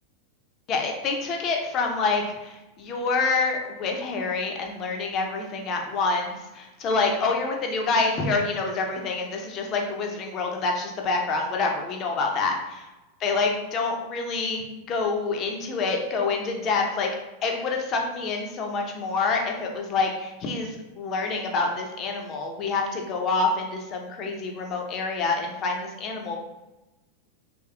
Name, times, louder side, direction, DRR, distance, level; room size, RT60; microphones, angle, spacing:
voice 1, 0.7-12.9 13.2-17.1 17.4-26.4, left 3 dB, 35° left, 1 dB, 0.6 m, -27 dB
3.2 x 2.9 x 2.3 m, 1.0 s
figure-of-eight pair, 90°, 0 cm